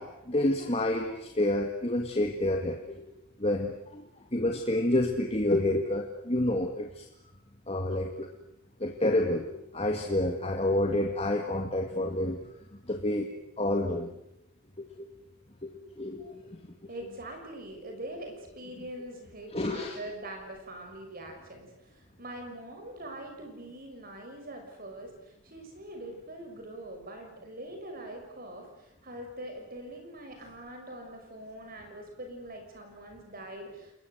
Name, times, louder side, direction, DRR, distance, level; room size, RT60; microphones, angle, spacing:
voice 1, 0.0-3.1 3.4-7.1 7.7-8.3 8.8-12.5 12.9-13.3 13.6-14.1 14.8-15.1 15.6-16.6 19.5-20.0, left 1 dB, 30° left, 2 dB, 2.0 m, -29 dB
voice 2, 16.9-33.9, right 1 dB, 40° right, 4 dB, 6.1 m, -43 dB
29.5 x 21.0 x 8.1 m, 0.84 s
head